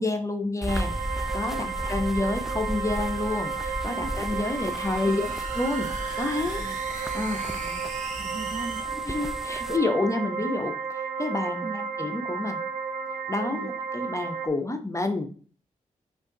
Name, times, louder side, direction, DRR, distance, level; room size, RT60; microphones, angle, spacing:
voice 1, 0.0-5.3 5.5-5.9 6.2-6.7 7.1-7.4 9.1-12.6 13.3-15.3, left 2 dB, 20° left, 6 dB, 0.9 m, -29 dB
sound 1, 0.6-9.8, equal, ahead, 0.4 m, -36 dB
sound 2, 0.7-14.5, right 5 dB, 85° right, 0.7 m, -33 dB
sound 3, 3.4-8.8, right 3 dB, 60° right, 1.1 m, -41 dB
voice 2, 3.9-4.3 5.0-5.3 5.9-6.0 6.6-6.8 7.3-7.8 8.1-8.9 9.6-9.7 11.6-11.9 13.5-13.7, right 3 dB, 40° right, 8 dB, 0.6 m, -40 dB
5.0 x 2.7 x 3.9 m, 0.42 s
supercardioid pair, 45°, 15 cm